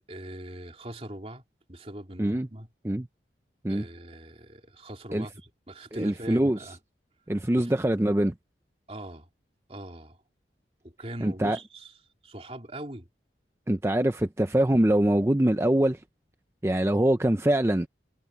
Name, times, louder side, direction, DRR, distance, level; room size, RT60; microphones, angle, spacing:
voice 1, 0.1-1.4 1.7-2.7 3.7-6.8 7.5-7.7 8.9-9.3 9.7-10.2 11.0-11.9 12.2-13.1, right 1 dB, 35° right, 3.3 m, -41 dB
voice 2, 5.9-6.6 7.3-8.3 11.2-11.6 13.7-16.0 16.6-17.9, right 1 dB, 15° right, 0.5 m, -24 dB
head